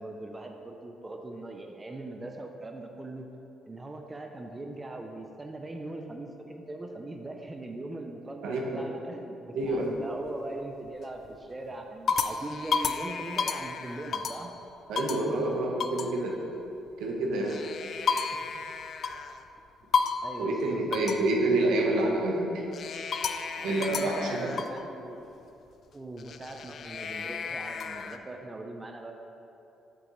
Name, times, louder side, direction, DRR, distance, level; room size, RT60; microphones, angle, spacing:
voice 1, 0.0-3.3 3.7-14.5 20.2-21.5 23.4-25.2 25.9-29.1, right 2 dB, 20° right, 3 dB, 0.5 m, -41 dB
voice 2, 8.4-8.8 9.6-9.9 14.9-16.4 17.0-17.6 20.4-22.7 23.6-24.5, right 2 dB, 85° right, 0 dB, 1.0 m, -28 dB
sound 1, 9.6-10.3 10.9-11.3 11.7-14.5 15.0-15.3 15.8-16.1 17.3-19.4 19.9-20.4 20.9-21.3 22.7-24.8 26.2-28.2, left 5 dB, 50° left, 0.3 m, -32 dB
7.3 x 6.6 x 3.1 m, 2.9 s
cardioid pair, 110°, 0 cm